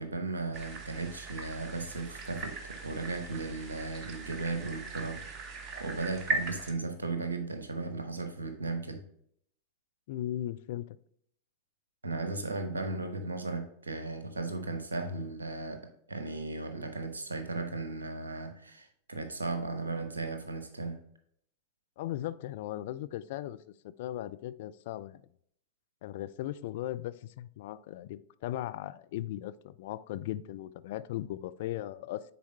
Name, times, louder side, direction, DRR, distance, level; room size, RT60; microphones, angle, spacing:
voice 1, 0.0-5.2 5.8-9.0 12.0-15.8 16.1-21.0, right 3 dB, 75° right, 7 dB, 0.9 m, -36 dB
sound 1, 0.5-6.7, right 3 dB, 35° right, 1.1 m, -39 dB
voice 2, 10.1-11.0 22.0-23.6 24.0-25.2 26.0-32.2, left 13 dB, 50° left, 14 dB, 0.3 m, -37 dB
9.3 x 4.2 x 2.7 m, 0.67 s
figure-of-eight pair, 90°, 0 cm